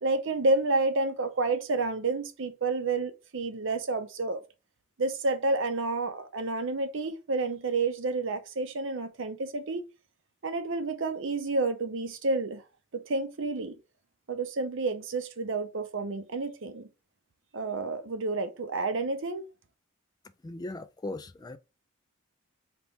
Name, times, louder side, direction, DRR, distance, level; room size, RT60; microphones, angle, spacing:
voice 1, 0.0-4.4 5.0-9.8 10.4-12.6 12.9-13.8 14.3-16.9 17.5-19.4, right 3 dB, 60° right, 0.7 m, -30 dB
voice 2, 20.4-21.6, left 2 dB, 20° left, 0.3 m, -38 dB
4.0 x 2.9 x 3.5 m
head